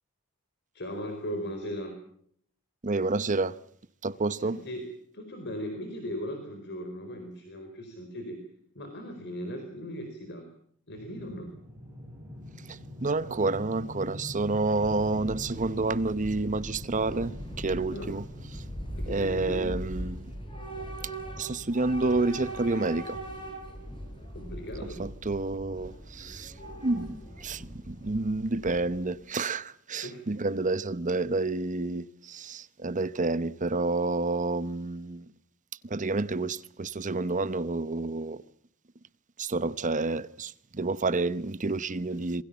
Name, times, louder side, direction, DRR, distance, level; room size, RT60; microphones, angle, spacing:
voice 1, 0.7-2.0 4.4-4.9 5.1-8.4 8.7-10.5 10.9-11.5 17.9-18.1 19.0-19.8 24.3-25.0 30.0-30.2, equal, 55° left, 4.4 m, -38 dB
voice 2, 2.8-3.6 4.0-4.6 12.7-18.2 18.5-18.7 19.1-20.3 21.0-21.1 21.4-23.2 25.0-26.6 26.8-35.3 35.8-38.4 39.4-42.4, right 3 dB, 35° right, 0.9 m, -29 dB
sound 1, 10.9-23.2, left 1 dB, 15° right, 6.8 m, -46 dB
Train / Subway metro underground, 14.3-29.2, right 1 dB, 25° left, 7.4 m, -41 dB
27.0 x 21.5 x 7.2 m
head